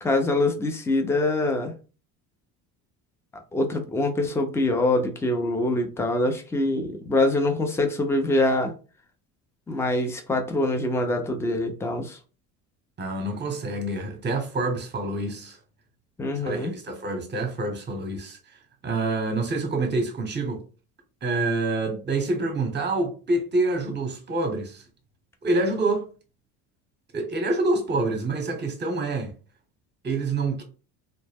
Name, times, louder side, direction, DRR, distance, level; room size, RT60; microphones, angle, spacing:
voice 1, 0.0-1.7 3.5-8.7 9.7-12.2 16.2-16.7, left 2 dB, 5° left, 0.4 m, -24 dB
voice 2, 13.0-15.6 16.4-18.4 18.8-20.6 21.2-24.8 25.4-26.0 27.1-29.3 30.0-30.6, right 2 dB, 20° right, 0.9 m, -27 dB
2.1 x 2.0 x 3.4 m
hypercardioid pair, 75°, 47 cm